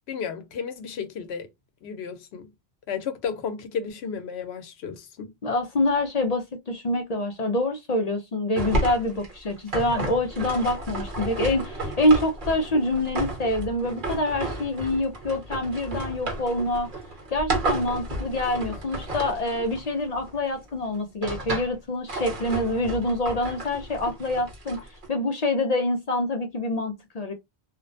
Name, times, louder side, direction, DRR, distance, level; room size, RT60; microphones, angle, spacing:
voice 1, 0.1-1.5 1.8-2.5 2.9-5.3, left 6 dB, 80° left, 0.8 m, -33 dB
voice 2, 5.4-16.9 17.3-24.8 25.1-27.3, left 1 dB, 55° left, 0.5 m, -26 dB
sound 1, 8.5-20.4 20.9-21.8 22.1-25.1, right 2 dB, 50° right, 1.0 m, -32 dB
2.4 x 2.0 x 2.5 m
omnidirectional pair, 1.1 m